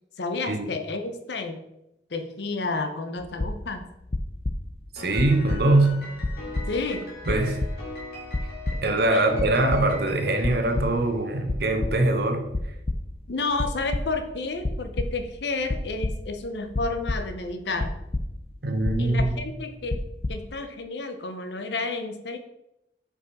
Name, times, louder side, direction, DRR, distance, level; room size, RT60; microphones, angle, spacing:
voice 1, 0.2-1.6 2.1-3.9 6.7-7.1 9.1-9.2 13.3-17.9 19.0-20.0 20.3-22.4, left 3 dB, 80° left, 7 dB, 0.7 m, -31 dB
Heart Beat, 3.2-3.8 4.1-4.9 5.2-5.9 6.2-7.0 7.3-8.0 8.3-9.1 9.3-10.1 10.4-11.1 11.4-12.2 12.5-13.3 13.6-14.4 14.6-15.3 15.7-17.5 17.8-18.6 18.9-19.6 19.9-20.3, left 2 dB, 35° left, 0.4 m, -30 dB
voice 2, 4.9-5.9 7.3-7.6 8.8-12.5 18.6-19.4, right 2 dB, 65° right, 5 dB, 0.8 m, -22 dB
Piano, 5.0-11.5, left 2 dB, 55° left, 2.2 m, -41 dB
5.4 x 4.8 x 4.1 m, 0.84 s
head